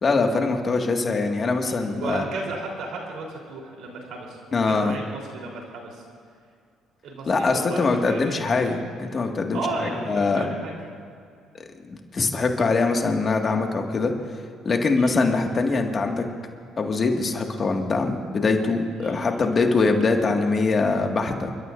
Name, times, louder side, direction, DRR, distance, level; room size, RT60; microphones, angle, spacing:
voice 1, 0.0-2.2 4.5-4.9 7.3-9.6 10.1-10.5 11.9-14.1 14.7-16.2 16.8-21.5, left 3 dB, 40° left, 3 dB, 1.9 m, -23 dB
voice 2, 1.6-6.0 7.0-8.7 9.5-10.7 15.0-15.2 19.0-19.2, right 3 dB, 70° right, 0 dB, 3.6 m, -34 dB
29.0 x 12.5 x 2.6 m, 2.3 s
supercardioid pair, 70°, 0 cm